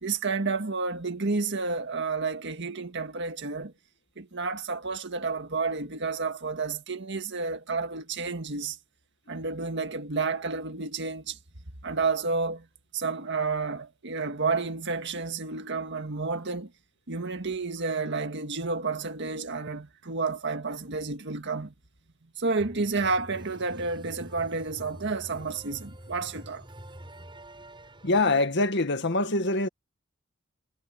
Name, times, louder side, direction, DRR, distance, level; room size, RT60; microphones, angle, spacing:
voice 1, 0.0-3.7 4.2-8.8 9.3-11.4 11.8-12.7 12.9-16.7 17.1-21.7 22.4-26.7, right 4 dB, 60° right, 1.8 m, -30 dB
sound 1, 22.6-28.2, right 1 dB, 25° right, 6.2 m, -46 dB
voice 2, 28.0-29.7, left 2 dB, 60° left, 1.9 m, -24 dB
head